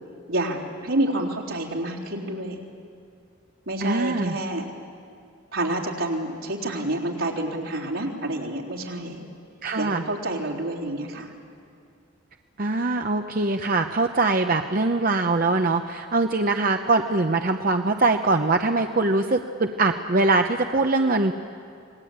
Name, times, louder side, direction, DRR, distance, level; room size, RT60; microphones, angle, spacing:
voice 1, 0.3-2.6 3.7-4.7 5.5-9.2 9.8-11.3, right 1 dB, 80° right, -3 dB, 3.8 m, -28 dB
voice 2, 3.8-4.4 9.6-10.0 12.6-21.3, right 3 dB, 45° right, 6 dB, 0.8 m, -22 dB
27.5 x 20.0 x 8.8 m, 2.4 s
head